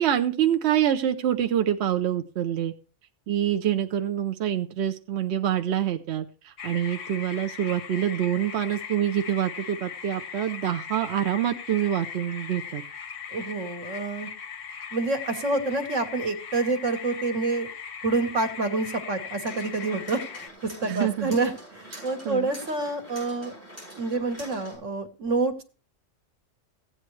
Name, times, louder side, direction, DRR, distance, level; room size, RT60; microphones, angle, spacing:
voice 1, 0.0-2.7 3.3-12.8 20.8-21.4 21.9-22.5, right 10 dB, 65° right, 7 dB, 0.9 m, -26 dB
sound 1, 6.6-20.5, left 7 dB, 85° left, 1.4 m, -39 dB
voice 2, 13.3-14.3 14.9-17.7 18.0-23.5 23.9-25.6, right 3 dB, 85° right, 6 dB, 1.8 m, -28 dB
sound 2, 19.4-24.8, equal, 10° left, 8.0 m, -45 dB
15.5 x 9.0 x 3.2 m, 0.36 s
omnidirectional pair, 1.2 m